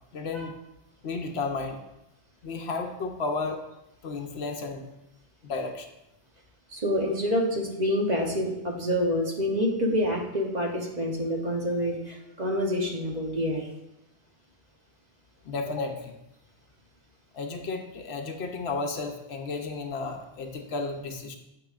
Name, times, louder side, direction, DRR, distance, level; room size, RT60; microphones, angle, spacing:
voice 1, 0.1-0.6 1.0-1.8 2.4-3.6 4.0-4.8 5.4-5.9 15.4-16.1 17.3-21.4, left 3 dB, 65° left, 4 dB, 1.0 m, -33 dB
voice 2, 6.7-13.7, equal, 40° right, 0 dB, 1.0 m, -27 dB
8.6 x 6.9 x 2.5 m, 0.90 s
omnidirectional pair, 1.2 m